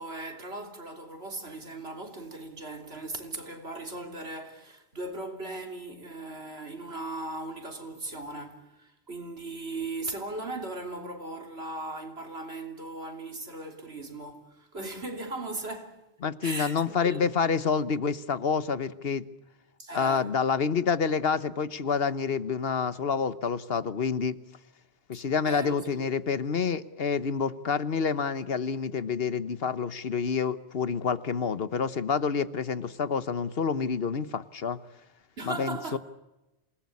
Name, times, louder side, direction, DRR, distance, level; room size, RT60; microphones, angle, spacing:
voice 1, 0.0-16.1 16.4-17.5 19.8-20.3 25.1-26.1 35.4-36.0, right 2 dB, 80° right, 3.4 m, -38 dB
voice 2, 16.2-19.2 19.9-24.4 25.1-34.8 35.4-36.0, left 6 dB, 70° left, 1.3 m, -28 dB
27.5 x 19.5 x 8.4 m
omnidirectional pair, 1.0 m